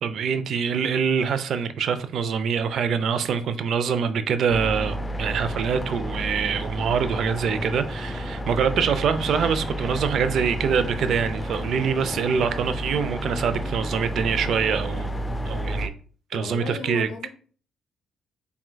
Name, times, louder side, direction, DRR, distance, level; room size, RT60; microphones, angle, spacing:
voice 1, 0.0-15.1 15.4-15.9 16.3-17.1, right 6 dB, 65° right, 0.4 m, -25 dB
sound 1, 4.5-15.9, equal, 15° left, 0.4 m, -31 dB
voice 2, 16.3-17.3, left 5 dB, 80° left, 0.6 m, -35 dB
4.4 x 3.5 x 2.2 m
cardioid pair, 90°, 0 cm